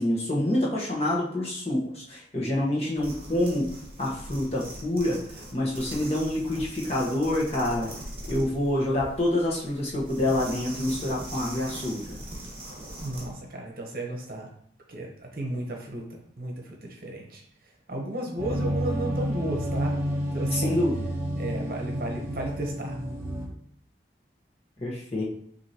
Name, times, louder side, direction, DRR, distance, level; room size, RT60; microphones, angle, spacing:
voice 1, 0.0-3.7 4.0-5.2 5.5-7.9 8.3-12.2 20.5-20.9 24.8-25.2, left 1 dB, 35° left, -4 dB, 1.0 m, -27 dB
sound 1, 3.0-13.3, right 1 dB, 30° right, 1.2 m, -41 dB
voice 2, 13.0-14.5 14.9-17.4 17.9-19.9 20.3-20.8 21.4-23.0, right 1 dB, 50° right, 0 dB, 0.9 m, -34 dB
sound 2, 18.4-23.5, equal, 15° right, 0.7 m, -30 dB
6.3 x 2.7 x 2.8 m, 0.66 s
head